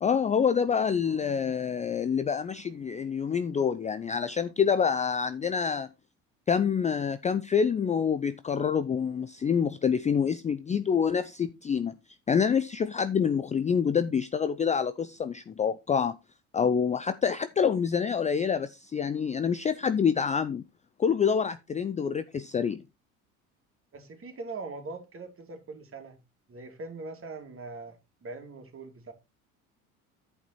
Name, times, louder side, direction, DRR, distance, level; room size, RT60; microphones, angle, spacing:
voice 1, 0.0-5.9 6.5-11.9 12.3-16.2 16.5-20.6 21.0-22.8, left 7 dB, 15° left, 0.5 m, -27 dB
voice 2, 1.2-1.9 23.9-26.2 26.5-29.1, right 3 dB, 30° right, 2.9 m, -42 dB
10.5 x 5.5 x 4.2 m
hypercardioid pair, 70°, 42 cm